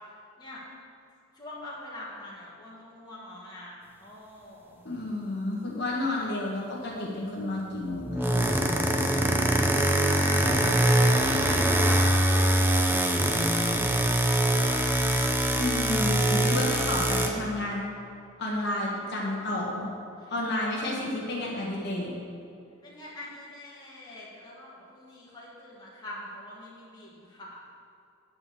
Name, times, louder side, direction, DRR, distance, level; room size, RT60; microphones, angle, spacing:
voice 1, 1.4-4.8 10.0-13.6 13.9-14.8 20.2-20.3 20.6-21.7 22.8-27.6, left 1 dB, 20° left, -6 dB, 1.8 m, -44 dB
voice 2, 4.8-8.4 15.6-17.8 18.4-19.9 20.3-22.1, left 1 dB, 50° left, -4 dB, 1.4 m, -31 dB
sound 1, 8.0-17.3, right 1 dB, 10° right, 0.5 m, -23 dB
9.5 x 4.8 x 6.9 m, 2.6 s
head